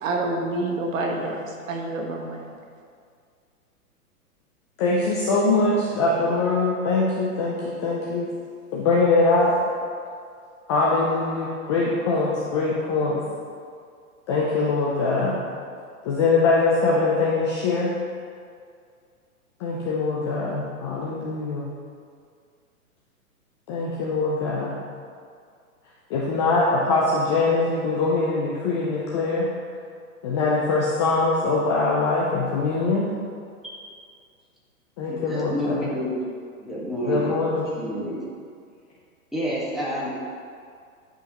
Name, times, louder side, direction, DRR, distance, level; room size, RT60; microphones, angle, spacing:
voice 1, 0.0-2.5, right 2 dB, 60° right, 1 dB, 1.2 m, -28 dB
voice 2, 4.8-8.3 8.7-9.6 10.7-13.2 14.3-15.4 16.0-17.9 19.6-21.7 23.7-24.7 26.1-29.5 30.2-33.1 35.0-35.9 37.0-37.7, left 3 dB, 20° left, -4 dB, 0.4 m, -22 dB
voice 3, 35.1-36.2 36.6-37.4 37.8-38.2 39.3-40.2, equal, ahead, -8 dB, 1.5 m, -28 dB
10.5 x 5.1 x 2.9 m, 2.2 s
hypercardioid pair, 130°, 44 cm